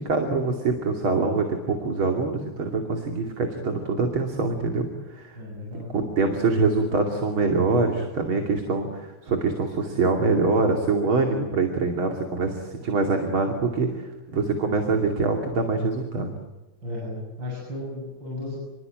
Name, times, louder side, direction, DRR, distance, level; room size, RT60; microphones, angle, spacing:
voice 1, 0.0-5.4 5.9-16.3, right 3 dB, 75° right, 3 dB, 3.5 m, -24 dB
voice 2, 5.3-5.9 16.8-18.6, left 2 dB, 60° right, -3 dB, 8.4 m, -34 dB
29.5 x 22.0 x 9.1 m, 1.1 s
omnidirectional pair, 2.2 m